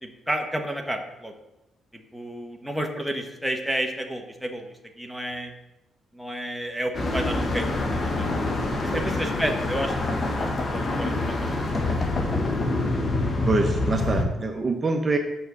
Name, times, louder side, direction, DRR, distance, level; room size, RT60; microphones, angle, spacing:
voice 1, 0.0-1.3 2.1-5.5 6.1-8.3 8.8-11.5 12.0-12.1, equal, ahead, 4 dB, 1.2 m, -31 dB
sound 1, 6.9-14.2, left 2 dB, 35° left, 1.4 m, -26 dB
voice 2, 13.5-15.2, right 3 dB, 30° right, 4 dB, 0.9 m, -25 dB
6.3 x 5.8 x 6.8 m, 0.94 s
cardioid pair, 90°, 0 cm